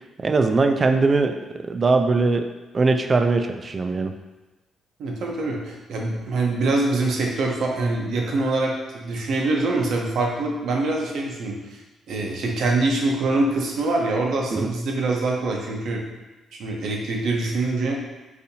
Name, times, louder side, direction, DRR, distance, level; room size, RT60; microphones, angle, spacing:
voice 1, 0.2-1.4 1.7-2.5 2.7-4.1 14.5-14.7, right 3 dB, 35° right, 7 dB, 0.3 m, -20 dB
voice 2, 5.0-11.8 12.1-16.0 16.5-18.0, right 2 dB, 70° right, 0 dB, 0.7 m, -24 dB
4.1 x 2.7 x 2.7 m, 1.1 s
cardioid pair, 90°, 0 cm